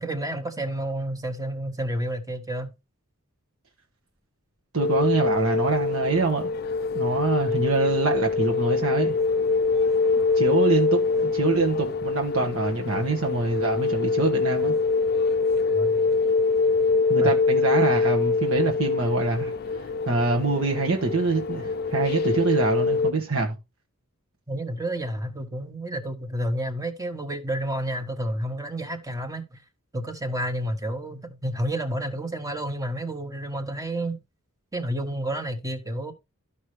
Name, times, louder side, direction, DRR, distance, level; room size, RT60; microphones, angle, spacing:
voice 1, 0.0-2.7 15.7-16.0 17.2-17.3 24.5-29.6 29.9-34.2 34.7-36.1, right 1 dB, 15° right, 1.2 m, -30 dB
voice 2, 4.7-6.5 6.9-9.1 10.1-14.7 17.1-19.5 20.1-23.6, right 3 dB, 70° right, 1.4 m, -25 dB
sound 1, 4.8-23.1, left 4 dB, 45° left, 0.5 m, -24 dB
13.0 x 5.4 x 3.2 m
head